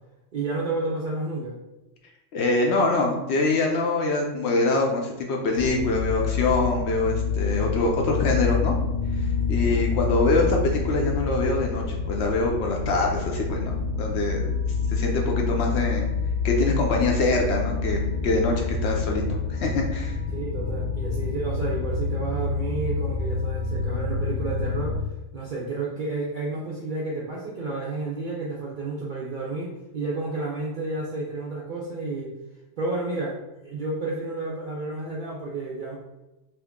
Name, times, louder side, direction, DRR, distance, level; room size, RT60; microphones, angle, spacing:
voice 1, 0.3-1.6 9.4-9.7 20.3-25.0 25.3-32.3 32.8-36.0, right 3 dB, 60° right, -4 dB, 0.5 m, -31 dB
voice 2, 2.3-8.7 9.5-14.6 14.9-16.1 16.4-20.1, left 2 dB, 65° left, 1 dB, 0.7 m, -24 dB
sound 1, 5.5-25.0, left 4 dB, 85° left, 1.3 m, -27 dB
2.8 x 2.4 x 3.5 m, 1.0 s
omnidirectional pair, 1.3 m